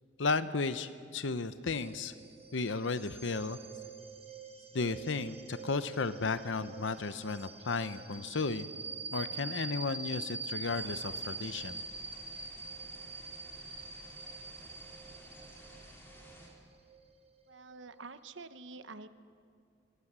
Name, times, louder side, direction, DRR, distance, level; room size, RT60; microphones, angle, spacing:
voice 1, 0.2-2.1 2.5-3.6 4.7-8.7 9.1-11.8, left 4 dB, 80° left, 12 dB, 0.8 m, -34 dB
sound 1, 1.7-18.0, right 4 dB, 35° right, 1.7 m, -45 dB
sound 2, 10.6-16.5, equal, 10° left, 4.8 m, -54 dB
voice 2, 17.5-19.1, right 3 dB, 85° right, 11 dB, 1.1 m, -47 dB
25.5 x 23.0 x 7.4 m, 2.4 s
head